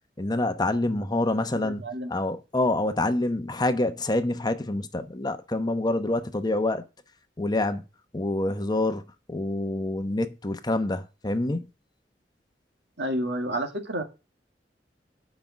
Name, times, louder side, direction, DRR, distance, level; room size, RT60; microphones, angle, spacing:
voice 1, 0.2-1.8 2.1-6.8 7.4-7.8 8.1-9.0 9.3-11.7, left 2 dB, 25° left, 0.9 m, -26 dB
voice 2, 1.6-2.1 13.0-14.0, right 1 dB, 80° right, 2.0 m, -30 dB
8.4 x 5.4 x 7.2 m
head